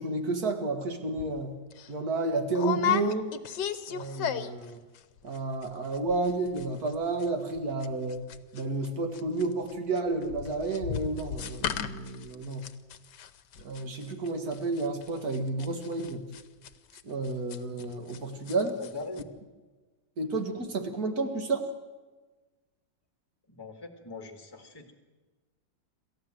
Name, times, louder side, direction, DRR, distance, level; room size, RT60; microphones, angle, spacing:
voice 1, 0.0-1.5 1.9-3.3 3.9-4.8 5.2-8.3 8.5-12.7 13.6-16.2 17.0-18.8 20.2-21.7, right 3 dB, 50° right, 6 dB, 2.3 m, -31 dB
sound 1, 1.2-1.3 1.7-1.9 2.5-4.7 5.0-5.4 5.6-5.7 5.9-6.3 6.6-8.9 9.1-18.2 18.5-18.9 19.2-19.3, left 9 dB, 65° left, 1.4 m, -34 dB
voice 2, 18.8-19.3 23.5-24.9, left 3 dB, 10° left, 4 dB, 1.9 m, -41 dB
27.5 x 14.0 x 7.7 m, 1.3 s
omnidirectional pair, 2.1 m